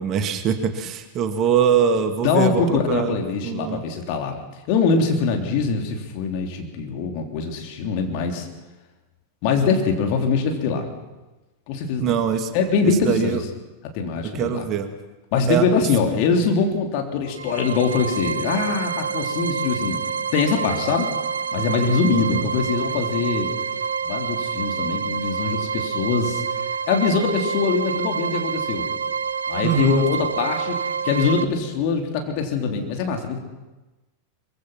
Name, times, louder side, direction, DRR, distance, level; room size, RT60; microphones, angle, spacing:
voice 1, 0.0-3.8 12.0-12.5 13.0-13.4 14.3-14.9 15.5-15.7 22.1-22.5 29.6-30.0, right 8 dB, 35° right, 8 dB, 2.0 m, -23 dB
voice 2, 2.2-4.4 4.7-8.5 9.4-10.9 11.7-12.2 12.5-13.4 13.9-14.6 15.3-20.0 20.3-21.1 21.5-23.5 24.0-28.9 29.5-33.4, left 5 dB, 45° left, 3 dB, 3.5 m, -23 dB
sound 1, 17.3-31.4, right 6 dB, 75° right, 1.2 m, -27 dB
24.0 x 22.5 x 6.0 m, 1.1 s
figure-of-eight pair, 90°, 0 cm